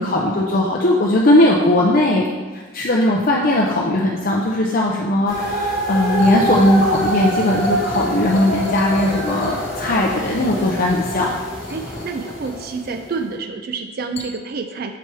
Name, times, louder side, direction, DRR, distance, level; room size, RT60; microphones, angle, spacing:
voice 1, 0.0-2.3 2.5-11.3, left 1 dB, 45° left, -2 dB, 0.5 m, -18 dB
sound 1, 5.3-13.1, right 1 dB, 30° right, 2.0 m, -25 dB
sound 2, 6.2-13.2 14.2-14.3, left 1 dB, 70° left, 1.2 m, -35 dB
voice 2, 11.7-15.0, right 4 dB, 45° right, 6 dB, 0.4 m, -28 dB
7.0 x 4.4 x 4.6 m, 1.3 s
head